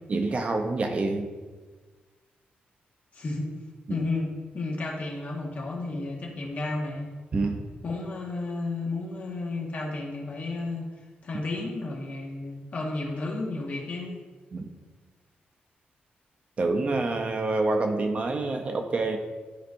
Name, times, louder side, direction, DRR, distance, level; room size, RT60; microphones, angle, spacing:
voice 1, 0.1-1.3 3.9-4.0 7.3-7.6 14.5-14.6 16.6-19.2, right 3 dB, 35° right, 4 dB, 0.6 m, -27 dB
voice 2, 3.1-3.5 3.9-7.1 7.8-10.9 11.2-14.2, left 2 dB, 45° left, -2 dB, 1.5 m, -32 dB
13.0 x 4.5 x 2.6 m, 1.3 s
wide cardioid pair, 155°, 4 cm